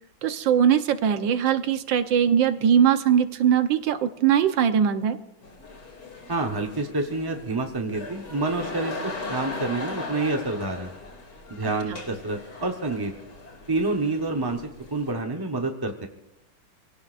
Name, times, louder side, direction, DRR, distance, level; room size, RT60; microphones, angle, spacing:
voice 1, 0.2-5.2 11.9-12.0, right 8 dB, 75° right, 9 dB, 1.7 m, -21 dB
sound 1, 5.4-15.1, left 2 dB, 60° left, 3.4 m, -39 dB
voice 2, 6.3-10.9 11.5-13.1 13.7-14.6 14.9-16.1, right 2 dB, 20° right, 3 dB, 0.6 m, -28 dB
26.5 x 17.5 x 2.6 m, 0.92 s
omnidirectional pair, 2.1 m